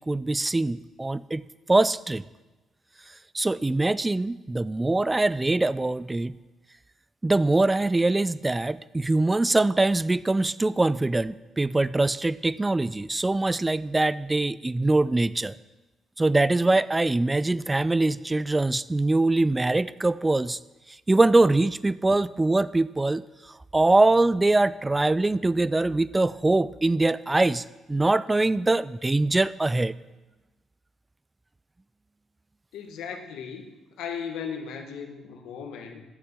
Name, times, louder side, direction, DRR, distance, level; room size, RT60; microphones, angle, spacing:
voice 1, 0.0-2.2 3.3-6.3 7.2-15.5 16.2-20.6 21.1-23.2 23.7-29.9, right 2 dB, 15° right, 18 dB, 0.3 m, -23 dB
voice 2, 32.7-36.0, left 6 dB, 85° left, 4 dB, 1.3 m, -37 dB
9.6 x 6.9 x 7.4 m, 1.1 s
cardioid pair, 90°, 0 cm